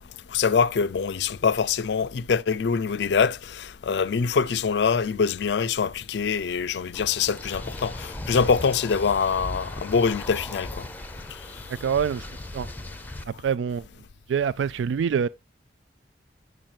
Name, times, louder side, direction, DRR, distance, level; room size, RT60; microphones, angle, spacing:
voice 1, 0.3-10.8, left 5 dB, 65° left, 0.4 m, -24 dB
sound 1, 6.9-13.2, left 1 dB, 10° left, 0.6 m, -37 dB
voice 2, 11.8-12.2 12.5-12.7 13.3-13.9 14.3-15.3, right 7 dB, 80° right, 0.3 m, -25 dB
8.8 x 6.5 x 2.4 m
head